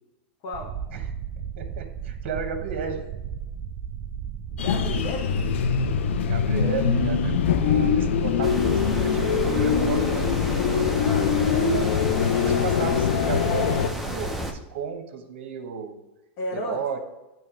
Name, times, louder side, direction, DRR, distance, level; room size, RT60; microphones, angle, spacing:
voice 1, 0.4-0.7 4.5-5.4 11.0-11.3 16.4-16.8, left 1 dB, 50° left, 0 dB, 1.2 m, -33 dB
sound 1, 0.5-11.1, right 8 dB, 40° right, 0.5 m, -34 dB
voice 2, 1.6-3.1 6.3-10.4 11.5-16.0 16.5-17.0, right 6 dB, 70° right, 4 dB, 1.0 m, -33 dB
sound 2, 4.6-13.9, left 8 dB, 85° left, 0.5 m, -23 dB
sound 3, 8.4-14.5, equal, ahead, 0.7 m, -31 dB
9.0 x 3.2 x 4.9 m, 1.0 s
supercardioid pair, 130°, 6 cm